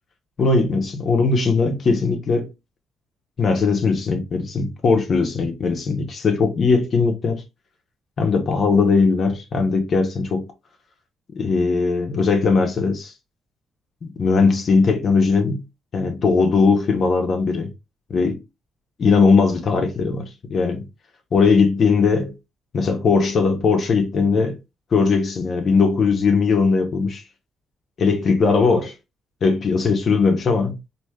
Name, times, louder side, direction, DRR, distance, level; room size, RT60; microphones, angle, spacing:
voice 1, 0.4-2.5 3.4-7.4 8.2-10.5 11.4-13.1 14.0-15.6 15.9-17.7 18.1-18.4 19.0-20.8 21.3-22.3 22.7-24.6 24.9-27.2 28.0-29.0 29.4-30.9, left 4 dB, 50° left, 0.7 m, -19 dB
3.2 x 2.6 x 2.2 m
cardioid pair, 90°, 0 cm